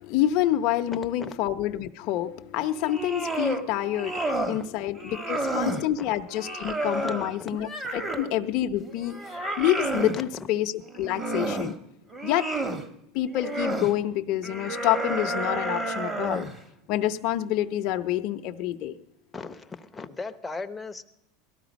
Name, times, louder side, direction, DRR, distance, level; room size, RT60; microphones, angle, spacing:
voice 1, 0.0-9.2 9.6-11.7 12.2-12.5 13.1-16.5 16.9-18.9, left 12 dB, 55° left, 5 dB, 0.7 m, -27 dB
sound 1, 2.7-3.6 3.9-4.6 5.0-5.9 6.3-8.4 8.8-10.2 10.9-11.7 12.1-12.8 13.3-13.9 14.4-16.6, right 2 dB, 15° right, 1.2 m, -30 dB
voice 2, 5.3-6.1 7.0-7.5 10.1-10.2 19.3-21.0, left 4 dB, 10° left, 6 dB, 0.8 m, -38 dB
18.0 x 12.5 x 5.2 m, 0.83 s
supercardioid pair, 130°, 0 cm